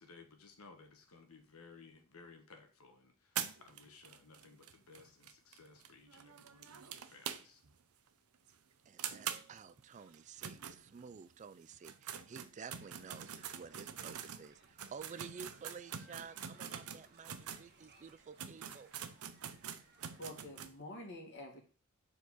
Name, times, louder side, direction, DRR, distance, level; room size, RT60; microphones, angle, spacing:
voice 1, 0.0-7.6, left 4 dB, 75° left, 1.4 m, -59 dB
sound 1, 3.3-7.8 8.1-8.2 8.5-8.6 9.0-11.3 11.7-17.7 18.1-18.2 18.4-20.7, right 8 dB, 80° right, 0.7 m, -45 dB
voice 2, 8.9-18.9, right 6 dB, 35° right, 0.3 m, -52 dB
sound 2, 12.6-20.2, right 3 dB, 50° right, 1.3 m, -65 dB
voice 3, 20.2-21.6, left 1 dB, 55° left, 2.2 m, -47 dB
7.1 x 4.6 x 4.1 m
head